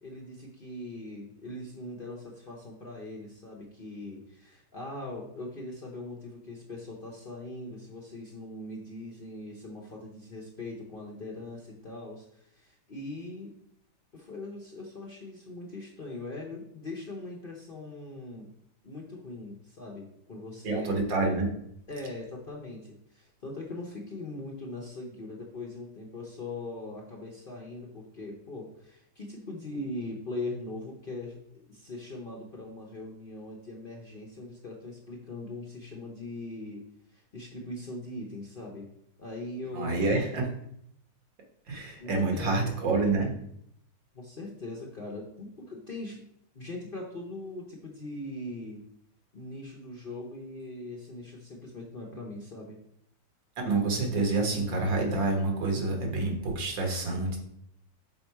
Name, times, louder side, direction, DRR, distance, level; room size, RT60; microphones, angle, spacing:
voice 1, 0.0-13.5 14.1-18.5 18.8-21.0 21.9-36.8 37.1-38.9 39.2-40.5 42.0-42.7 44.1-46.2 46.5-48.8 49.3-52.8, left 2 dB, 40° left, -2 dB, 0.8 m, -41 dB
voice 2, 20.6-21.5 39.7-40.5 41.7-43.3 53.6-57.4, right 3 dB, 85° right, 2 dB, 2.1 m, -28 dB
6.1 x 4.3 x 4.6 m, 0.71 s
omnidirectional pair, 2.0 m